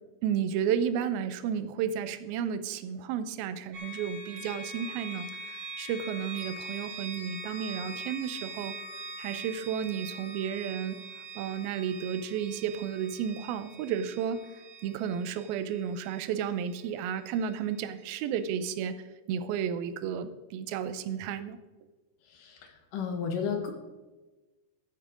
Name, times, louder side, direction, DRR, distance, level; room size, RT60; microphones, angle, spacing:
voice 1, 0.2-8.8 9.2-11.0 11.4-14.5 14.8-19.0 19.3-21.6, right 8 dB, 85° right, 12 dB, 2.5 m, -32 dB
sound 1, 3.7-17.5, right 2 dB, 50° right, 2.0 m, -43 dB
voice 2, 22.3-23.7, left 6 dB, 70° left, 4 dB, 2.7 m, -33 dB
13.5 x 7.4 x 5.0 m, 1.2 s
omnidirectional pair, 4.3 m